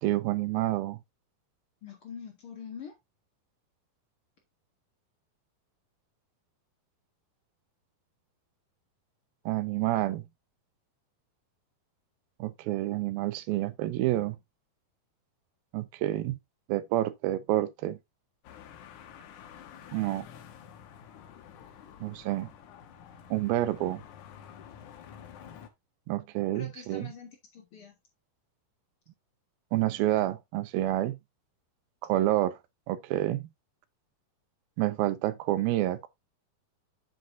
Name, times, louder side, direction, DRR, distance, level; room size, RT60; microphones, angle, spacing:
voice 1, 0.0-1.0 9.5-10.2 12.4-14.4 15.7-16.4 16.7-18.0 19.9-20.3 22.0-22.5 23.3-24.0 26.1-27.1 29.7-31.2 32.0-32.6 32.9-33.4 34.8-36.1, right 15 dB, 85° right, 2.6 m, -28 dB
voice 2, 1.8-3.0 26.5-27.9, left 6 dB, 45° left, 2.0 m, -44 dB
sound 1, 18.4-25.7, left 8 dB, 65° left, 2.4 m, -49 dB
8.6 x 7.9 x 2.6 m
omnidirectional pair, 4.2 m